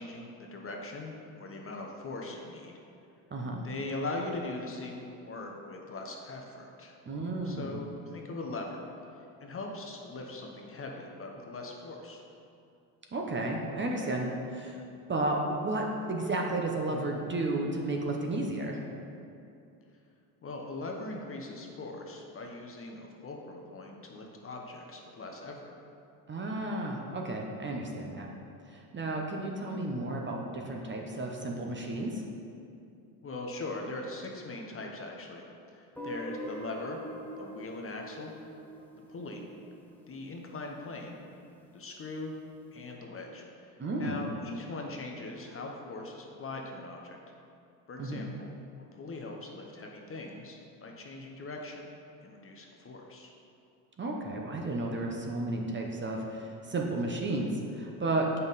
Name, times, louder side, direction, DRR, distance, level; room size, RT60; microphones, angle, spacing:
voice 1, 0.0-2.8 3.6-6.9 7.4-12.2 20.4-25.7 33.2-37.0 37.4-38.3 39.1-39.4 40.1-41.2 41.7-42.3 42.7-47.2 47.9-48.5 48.9-51.9 52.2-53.3, left 2 dB, 30° left, 1 dB, 0.9 m, -41 dB
voice 2, 3.3-3.6 7.1-7.8 13.1-14.8 15.1-18.8 26.3-28.3 28.7-32.2 43.8-44.2 48.0-48.2 54.0-58.4, right 2 dB, 25° right, 0 dB, 0.9 m, -33 dB
Guitar, 36.0-40.8, equal, 5° left, 1.0 m, -44 dB
7.1 x 5.4 x 4.1 m, 2.6 s
supercardioid pair, 90°, 45 cm